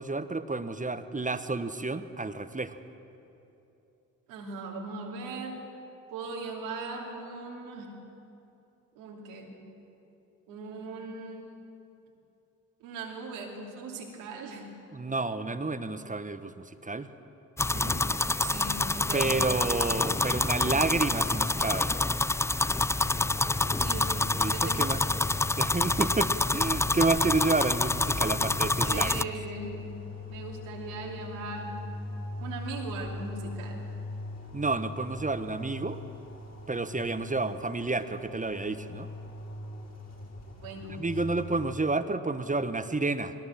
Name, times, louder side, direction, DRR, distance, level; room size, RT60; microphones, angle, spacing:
voice 1, 0.0-2.8 14.9-17.1 19.1-21.9 24.4-25.0 25.6-29.3 34.5-36.0 36.7-39.1 41.0-43.3, right 3 dB, 20° right, 11 dB, 1.3 m, -30 dB
voice 2, 4.3-5.6 6.1-7.9 8.9-9.7 10.5-11.6 12.8-14.7 17.6-19.9 23.8-24.2 24.5-25.0 28.8-29.9 30.3-31.8 32.4-33.8 40.6-41.1, right 3 dB, 85° right, -1 dB, 2.9 m, -39 dB
sound 1, 17.6-29.2, left 2 dB, 5° left, 0.4 m, -27 dB
sound 2, 23.0-41.8, left 3 dB, 40° left, 5.1 m, -40 dB
21.0 x 18.0 x 7.6 m, 2.8 s
hypercardioid pair, 45°, 39 cm